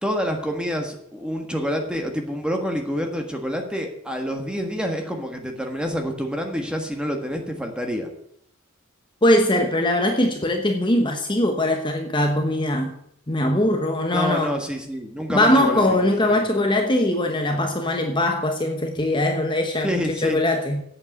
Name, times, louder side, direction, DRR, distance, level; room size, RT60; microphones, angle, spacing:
voice 1, 0.0-8.1 14.1-16.0 16.2-16.4 19.8-20.4, equal, 5° right, 1.5 m, -27 dB
voice 2, 9.2-12.9 13.3-14.5 15.3-20.8, left 1 dB, 20° left, 1.0 m, -21 dB
8.4 x 7.6 x 8.0 m
head